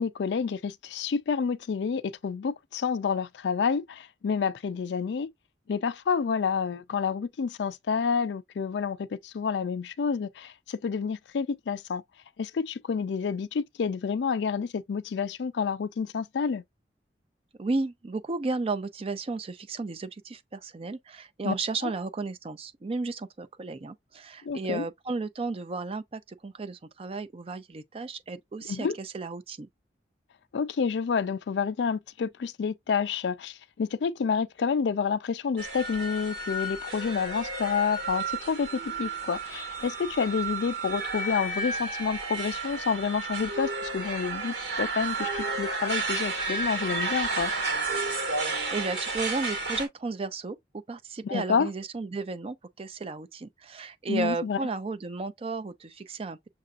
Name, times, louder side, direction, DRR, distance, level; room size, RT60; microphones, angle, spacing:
voice 1, 0.0-5.3 5.7-12.0 12.4-16.6 21.4-21.5 21.8-21.9 24.4-24.9 28.7-29.0 30.5-47.5 51.2-51.7 54.1-54.6, left 6 dB, 80° left, 0.4 m, -29 dB
voice 2, 17.6-29.7 48.5-56.4, right 3 dB, 35° right, 0.4 m, -34 dB
sound 1, 35.6-49.9, right 3 dB, 85° right, 1.8 m, -32 dB
6.6 x 2.5 x 2.4 m
head